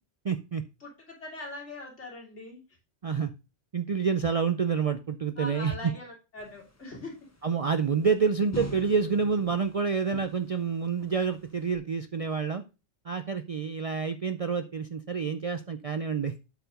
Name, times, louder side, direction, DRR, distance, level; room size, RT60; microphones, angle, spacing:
voice 1, 0.2-0.6 3.0-3.3 3.7-5.7 7.4-12.6 13.1-16.3, right 5 dB, 55° right, 10 dB, 0.4 m, -28 dB
voice 2, 0.8-2.6 5.4-7.1, left 2 dB, 80° left, -2 dB, 3.4 m, -41 dB
sound 1, 6.4-11.8, equal, 15° left, 1.0 m, -45 dB
8.3 x 4.6 x 5.2 m, 0.30 s
omnidirectional pair, 1.2 m